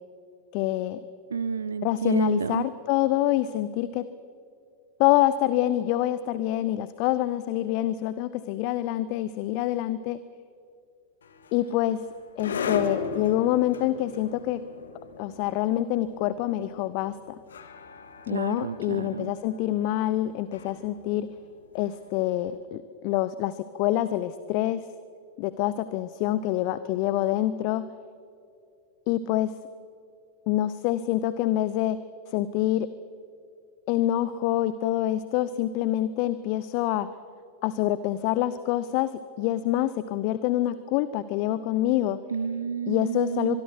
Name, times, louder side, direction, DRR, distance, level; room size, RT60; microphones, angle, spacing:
voice 1, 0.5-1.0 1.8-4.0 5.0-10.2 11.5-12.0 12.4-14.6 15.2-17.4 18.3-21.3 21.7-24.9 25.4-27.9 29.1-29.5 30.5-32.0 32.3-32.9 33.9-37.1 37.6-39.1 39.4-42.2 42.9-43.6, left 14 dB, 45° left, 15 dB, 0.7 m, -26 dB
voice 2, 1.3-2.6 18.3-19.3 42.3-43.6, right 6 dB, 70° right, 15 dB, 0.6 m, -30 dB
sound 1, 11.2-22.3, left 5 dB, 65° left, 1.8 m, -38 dB
24.5 x 22.0 x 6.2 m, 2.5 s
figure-of-eight pair, 90°, 0 cm